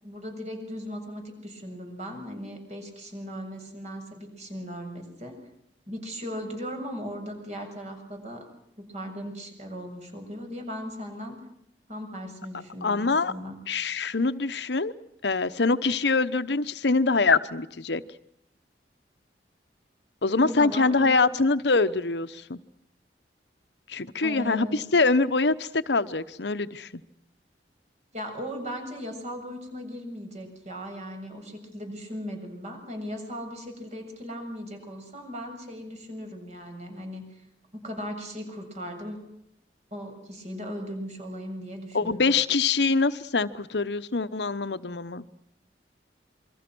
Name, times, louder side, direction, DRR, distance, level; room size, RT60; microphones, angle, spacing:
voice 1, 0.0-5.4 5.9-8.5 8.8-11.4 11.9-13.6 20.4-21.2 24.2-24.8 28.1-37.2 37.7-39.2 39.9-42.3, equal, 40° right, 4 dB, 7.3 m, -37 dB
voice 2, 12.8-13.3 13.7-14.9 15.2-18.0 20.2-22.6 23.9-27.0 41.9-45.3, left 3 dB, 70° left, 11 dB, 1.0 m, -24 dB
28.0 x 23.5 x 6.2 m, 0.77 s
head